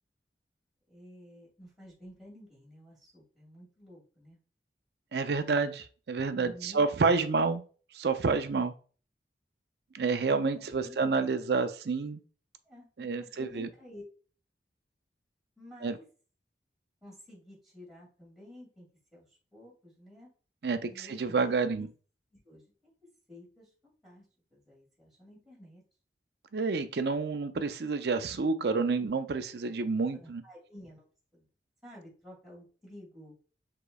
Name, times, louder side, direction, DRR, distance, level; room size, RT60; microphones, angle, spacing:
voice 1, 0.9-4.4 6.3-6.8 10.2-11.0 12.7-14.0 15.6-16.0 17.0-18.9 19.1-20.3 20.8-21.4 21.6-21.9 22.3-22.9 23.3-24.3 24.5-25.8 29.0-29.1 30.1-31.5 31.8-33.4, left 1 dB, ahead, -7 dB, 2.4 m, -52 dB
voice 2, 5.1-7.6 7.9-8.7 9.9-12.2 13.0-13.7 15.8-16.0 20.6-21.9 26.5-30.4, right 4 dB, 65° right, 10 dB, 0.5 m, -29 dB
4.9 x 3.8 x 2.3 m, 0.38 s
head